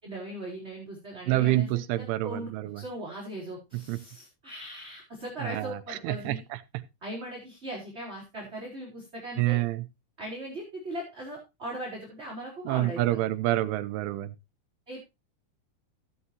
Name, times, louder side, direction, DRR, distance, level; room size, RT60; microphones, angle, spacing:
voice 1, 0.0-6.4 7.0-9.6 10.2-13.2 14.9-15.0, right 1 dB, 15° right, 3.3 m, -39 dB
voice 2, 1.3-2.8 3.9-4.0 5.4-5.8 6.0-6.4 9.4-9.8 12.7-14.3, right 16 dB, 90° right, 3.3 m, -27 dB
14.0 x 9.6 x 2.8 m
omnidirectional pair, 5.4 m